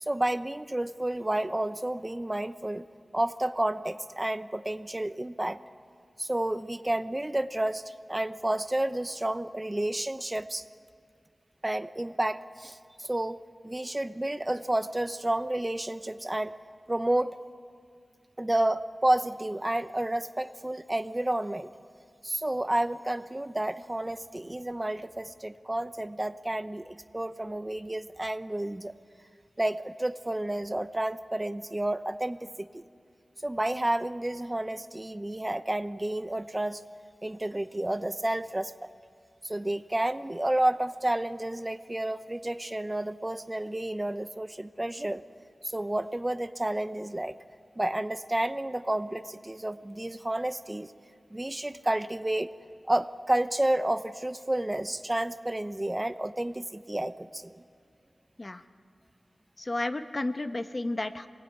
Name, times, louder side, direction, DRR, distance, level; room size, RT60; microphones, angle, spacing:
voice 1, 0.0-2.9 3.1-5.6 6.2-10.6 11.6-16.6 16.9-17.4 18.4-21.7 22.2-28.9 29.6-32.7 33.4-36.8 37.2-38.9 39.4-45.2 45.6-47.4 47.8-50.9 51.3-52.5 52.8-57.6, right 1 dB, 25° right, 12 dB, 0.8 m, -30 dB
voice 2, 59.6-61.3, left 2 dB, 40° left, 9 dB, 1.2 m, -32 dB
24.0 x 20.5 x 9.6 m, 2.2 s
cardioid pair, 45°, 0 cm